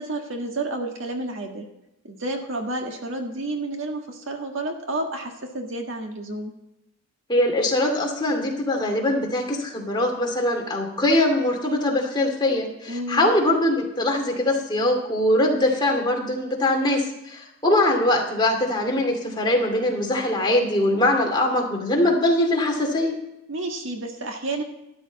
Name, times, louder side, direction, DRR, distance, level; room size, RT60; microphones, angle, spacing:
voice 1, 0.0-1.7 2.0-6.5 12.9-13.3 23.5-24.6, right 2 dB, 60° right, 3 dB, 1.7 m, -30 dB
voice 2, 7.3-23.1, left 1 dB, 20° left, 0 dB, 2.4 m, -22 dB
12.5 x 12.5 x 4.1 m, 0.89 s
head